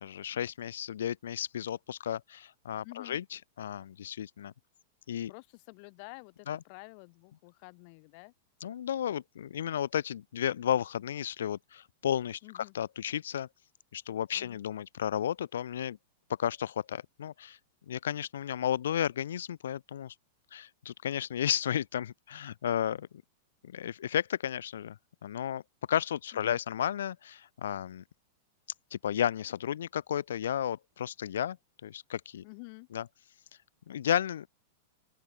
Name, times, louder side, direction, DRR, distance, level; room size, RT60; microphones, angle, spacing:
voice 1, 0.0-4.5 5.1-5.3 6.5-6.6 8.6-13.5 13.9-16.0 16.4-17.6 17.9-20.1 20.5-23.1 23.6-25.0 25.2-25.6 25.9-28.0 28.9-31.6 31.8-32.4 32.9-33.0 33.9-34.5, left 10 dB, 85° left, 0.4 m, -33 dB
voice 2, 2.8-3.2 5.3-8.3 12.4-12.7 14.3-14.6 26.3-26.6 32.4-32.9, left 35 dB, 50° left, 3.5 m, -49 dB
open air
hypercardioid pair, 130°, 0 cm